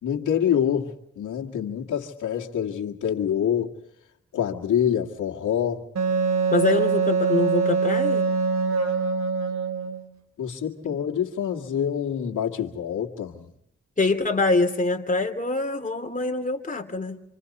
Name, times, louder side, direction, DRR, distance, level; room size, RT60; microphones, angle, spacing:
voice 1, 0.0-3.7 4.3-5.9 10.4-13.5, left 9 dB, 90° left, 1 dB, 2.1 m, -26 dB
Wind instrument woodwind instrument, 6.0-10.0, right 5 dB, 65° right, 3.3 m, -23 dB
voice 2, 6.5-8.3 14.0-17.2, left 3 dB, 25° left, 5 dB, 2.9 m, -24 dB
27.0 x 27.0 x 4.2 m, 0.76 s
cardioid pair, 65°, 30 cm